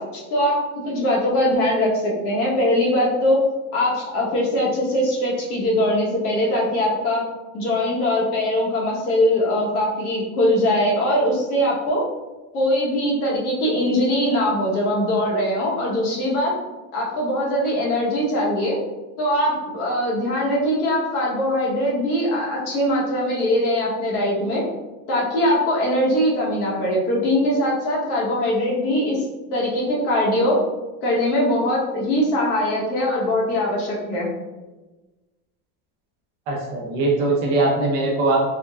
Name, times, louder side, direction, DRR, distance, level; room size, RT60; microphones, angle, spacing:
voice 1, 0.0-3.4 3.7-7.2 7.5-12.0 12.5-16.5 16.9-18.8 19.2-24.6 25.1-29.2 29.5-30.6 31.0-34.3, left 1 dB, 80° left, -4 dB, 1.2 m, -21 dB
voice 2, 36.5-38.4, right 2 dB, 35° right, -3 dB, 0.5 m, -21 dB
3.6 x 2.1 x 2.3 m, 1.1 s
supercardioid pair, 175°, 44 cm